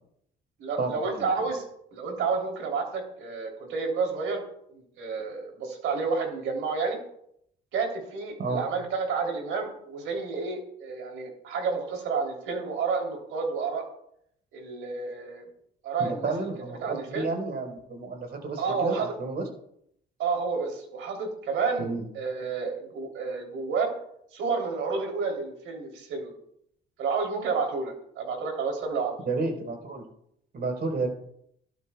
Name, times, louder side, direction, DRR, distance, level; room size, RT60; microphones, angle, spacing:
voice 1, 0.6-1.6 1.9-4.4 4.7-7.0 7.7-13.8 14.5-15.4 15.8-16.3 16.8-17.3 18.6-19.1 20.2-23.9 24.3-26.3 27.0-29.1, right 4 dB, 85° right, 2 dB, 3.4 m, -30 dB
voice 2, 16.0-19.5 21.8-22.0 29.3-30.0 30.5-31.1, right 3 dB, 55° right, 2 dB, 4.4 m, -31 dB
16.5 x 12.5 x 2.4 m, 0.72 s
cardioid pair, 90°, 20 cm